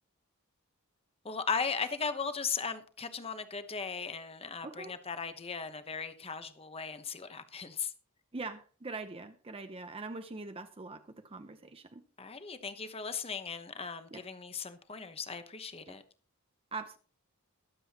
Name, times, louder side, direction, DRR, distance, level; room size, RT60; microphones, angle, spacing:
voice 1, 1.2-7.9 12.2-16.0, left 5 dB, 25° left, 1.0 m, -37 dB
voice 2, 4.6-5.0 8.3-12.0 14.1-14.2 15.9-16.0 16.7-17.0, right 3 dB, 25° right, 0.7 m, -43 dB
22.0 x 7.7 x 2.9 m
head